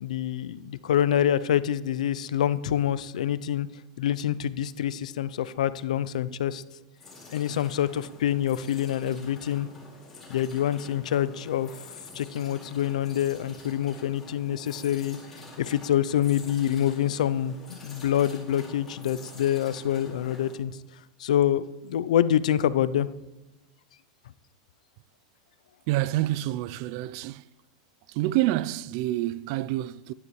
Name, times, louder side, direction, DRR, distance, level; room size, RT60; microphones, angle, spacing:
voice 1, 0.0-3.7 4.0-6.6 7.3-9.7 10.3-11.7 12.1-15.2 15.6-20.7 21.2-23.1, left 10 dB, 90° left, 0.5 m, -26 dB
sound 1, 7.0-20.6, left 3 dB, 10° left, 4.4 m, -47 dB
voice 2, 25.9-27.5 28.1-30.1, right 16 dB, 50° right, 0.3 m, -27 dB
15.0 x 11.0 x 3.1 m
supercardioid pair, 145°, 4 cm